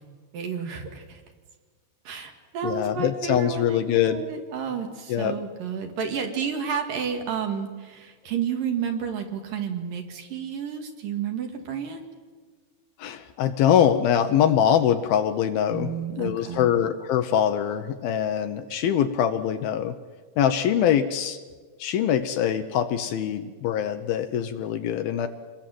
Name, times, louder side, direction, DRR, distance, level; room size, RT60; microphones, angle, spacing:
voice 1, 0.3-1.2 2.0-12.0 15.7-16.7, right 7 dB, 60° right, 4 dB, 3.2 m, -31 dB
voice 2, 2.6-4.2 5.1-5.4 13.0-20.0 20.4-21.4 21.8-25.3, left 9 dB, 75° left, 9 dB, 2.4 m, -23 dB
26.5 x 20.5 x 7.7 m, 1.5 s
omnidirectional pair, 4.7 m